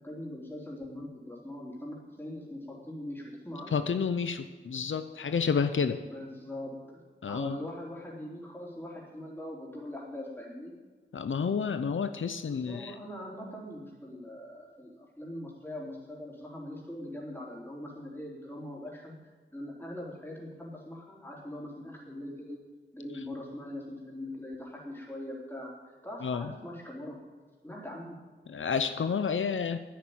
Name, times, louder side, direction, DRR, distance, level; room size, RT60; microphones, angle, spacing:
voice 1, 0.0-3.8 6.1-7.0 7.3-10.7 12.5-19.1 19.5-22.6 22.9-27.2 27.6-28.2, left 1 dB, 10° left, -3 dB, 4.0 m, -42 dB
voice 2, 3.7-6.0 7.2-7.6 11.1-12.9 26.2-26.5 28.5-29.8, left 6 dB, 80° left, 10 dB, 0.6 m, -30 dB
10.5 x 9.4 x 8.9 m, 1.4 s
cardioid pair, 50°, 20 cm